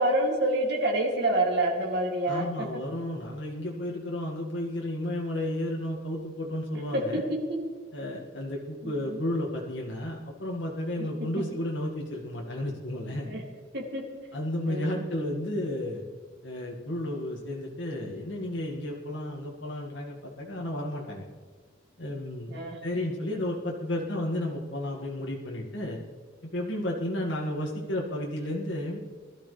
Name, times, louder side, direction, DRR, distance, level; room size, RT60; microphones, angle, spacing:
voice 1, 0.0-2.8 6.9-7.6 8.8-9.2 11.0-11.4 13.2-13.4 13.7-14.1 14.7-15.0 22.5-22.8, right 1 dB, 60° right, -2 dB, 2.6 m, -28 dB
voice 2, 2.3-7.2 7.9-13.3 14.3-16.0 16.4-21.2 22.0-22.6 22.8-26.0 26.4-29.0, left 1 dB, 70° left, -2 dB, 2.0 m, -32 dB
21.0 x 13.0 x 3.4 m, 1.6 s
head